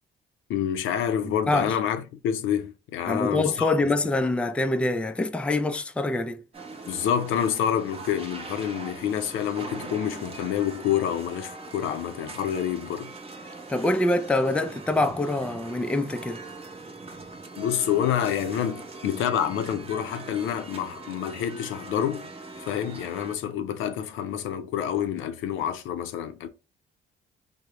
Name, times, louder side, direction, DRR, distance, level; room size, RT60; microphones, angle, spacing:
voice 1, 0.5-3.7 6.9-13.1 17.6-22.3 22.6-26.5, left 9 dB, 85° left, 0.5 m, -28 dB
voice 2, 1.2-1.8 3.1-6.4 13.7-16.4, left 2 dB, 5° left, 0.3 m, -25 dB
sound 1, 6.5-23.4, right 3 dB, 30° right, 0.8 m, -41 dB
3.5 x 2.0 x 2.9 m
cardioid pair, 90°, 20 cm